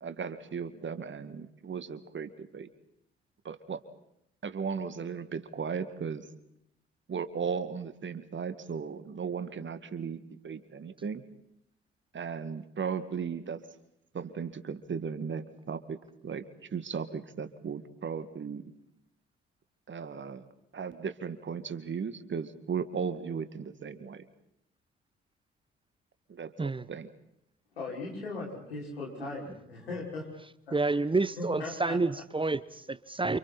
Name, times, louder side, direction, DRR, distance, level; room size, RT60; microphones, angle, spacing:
voice 1, 0.0-2.7 3.4-3.8 4.4-6.3 7.1-11.2 12.1-13.6 14.1-16.0 16.2-16.4 16.7-18.7 19.9-20.4 20.7-24.2 26.3-27.1, right 6 dB, 40° right, 11 dB, 2.3 m, -36 dB
voice 2, 27.7-30.3 30.7-31.1 31.3-32.0, left 2 dB, 85° left, -3 dB, 6.1 m, -39 dB
voice 3, 30.7-33.4, right 3 dB, 15° right, 17 dB, 1.0 m, -29 dB
29.5 x 28.5 x 4.4 m, 0.76 s
figure-of-eight pair, 45°, 30 cm